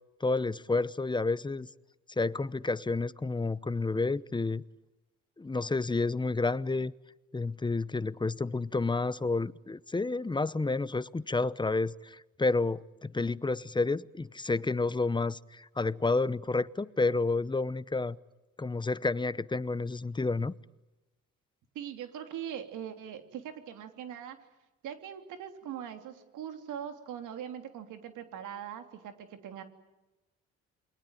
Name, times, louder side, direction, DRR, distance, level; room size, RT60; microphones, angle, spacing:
voice 1, 0.2-1.7 2.2-4.6 5.4-6.9 7.3-18.2 18.6-20.5, left 3 dB, 15° left, 0.9 m, -30 dB
voice 2, 21.7-24.4 24.8-29.6, right 9 dB, 85° right, 3.3 m, -41 dB
29.0 x 22.5 x 9.1 m
cardioid pair, 90°, 30 cm